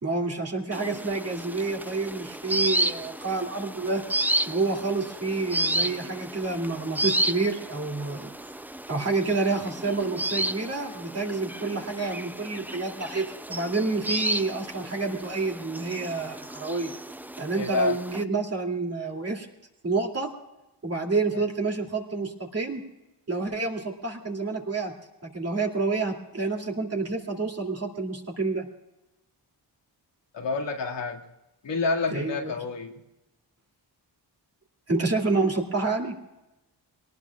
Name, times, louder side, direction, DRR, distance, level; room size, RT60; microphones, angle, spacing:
voice 1, 0.0-4.0 4.5-8.3 8.9-16.9 17.4-19.5 19.8-20.3 20.8-22.8 23.3-24.9 25.2-28.6 32.1-32.5 34.9-36.1, right 3 dB, 35° right, 1 dB, 2.7 m, -28 dB
sound 1, 0.7-18.2, right 1 dB, 5° right, 0.4 m, -32 dB
voice 2, 17.5-18.0 21.3-21.4 30.3-31.2 31.6-32.9, left 3 dB, 90° left, 0 dB, 2.1 m, -28 dB
23.5 x 18.5 x 2.4 m, 0.99 s
cardioid pair, 90°, 42 cm